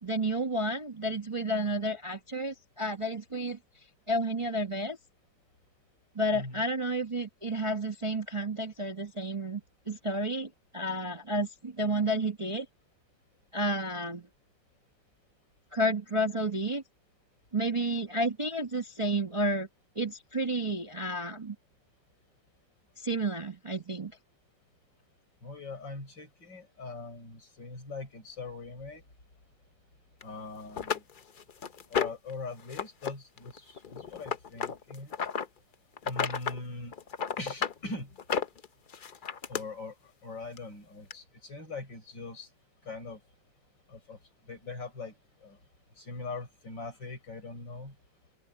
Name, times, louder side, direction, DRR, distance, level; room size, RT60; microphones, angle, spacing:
voice 1, 0.0-3.6 4.1-5.0 6.1-12.7 13.5-14.3 15.7-16.8 17.5-19.7 19.9-21.5 23.0-24.1, right 1 dB, 20° right, 1.0 m, -31 dB
voice 2, 6.3-6.6 25.4-29.0 30.2-31.0 31.9-35.1 36.0-37.0 37.4-38.1 39.5-42.5 42.8-43.2 43.9-45.6 46.0-48.0, left 3 dB, 75° left, 7.1 m, -42 dB
sound 1, 30.2-30.3 30.8-32.3 32.7-33.1 33.4-35.5 36.0-36.6 36.9-37.8 38.2-39.6 40.6-40.7 41.1-41.2, left 7 dB, 55° left, 0.5 m, -32 dB
open air
omnidirectional pair, 2.0 m